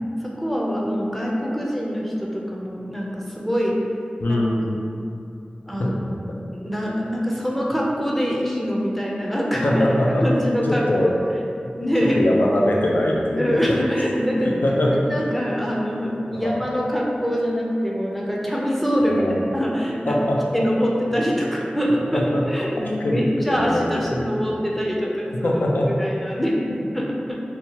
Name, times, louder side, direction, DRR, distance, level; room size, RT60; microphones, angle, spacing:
voice 1, 0.2-3.8 4.3-4.4 5.7-6.0 6.5-9.8 10.2-11.1 11.7-12.3 13.4-14.8 15.1-19.3 19.5-20.2 20.5-25.5 26.0-26.7 26.9-27.4, equal, 5° left, -4 dB, 0.4 m, -24 dB
voice 2, 4.2-4.8 5.8-6.4 9.6-10.3 10.7-11.1 12.1-13.6 14.4-15.3 16.3-16.6 19.0-19.4 20.1-20.7 22.1-22.4 23.0-24.3 25.0-25.9, left 1 dB, 80° left, -2 dB, 0.4 m, -22 dB
2.7 x 2.2 x 2.8 m, 2.5 s
wide cardioid pair, 70°, 3 cm